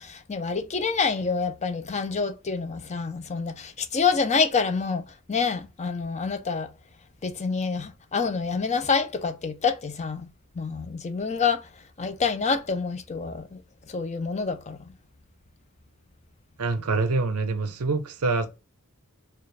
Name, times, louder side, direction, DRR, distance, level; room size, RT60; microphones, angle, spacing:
voice 1, 0.0-5.0 5.3-6.7 7.2-10.3 10.6-11.6 12.0-13.6 13.9-14.8, left 5 dB, 30° left, 0.5 m, -27 dB
voice 2, 16.6-18.5, right 3 dB, 90° right, 0.7 m, -25 dB
4.5 x 2.4 x 3.3 m
head